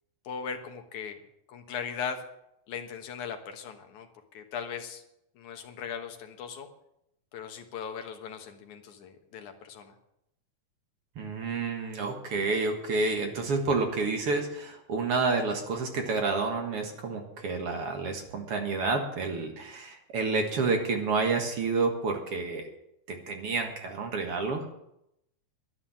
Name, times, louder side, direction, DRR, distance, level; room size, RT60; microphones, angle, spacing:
voice 1, 0.2-1.2 1.5-2.2 2.7-4.1 4.3-5.0 5.4-6.7 7.3-9.9, left 7 dB, 65° left, 5 dB, 2.6 m, -38 dB
voice 2, 11.2-22.7 23.1-24.7, right 4 dB, 50° right, 4 dB, 2.0 m, -29 dB
11.5 x 11.0 x 7.4 m, 0.81 s
omnidirectional pair, 4.0 m